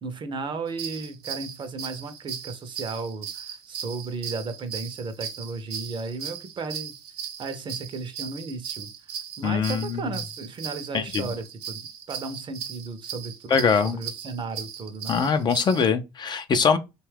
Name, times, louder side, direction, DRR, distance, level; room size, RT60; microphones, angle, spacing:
voice 1, 0.0-7.0 7.4-8.9 9.4-13.5 13.8-15.2, right 4 dB, 40° right, 0.6 m, -35 dB
sound 1, 0.7-15.8, right 8 dB, 85° right, 0.6 m, -37 dB
voice 2, 9.4-10.0 10.9-11.3 13.5-14.0 15.1-16.8, left 6 dB, 35° left, 0.4 m, -22 dB
2.7 x 2.3 x 3.2 m
hypercardioid pair, 75°, 13 cm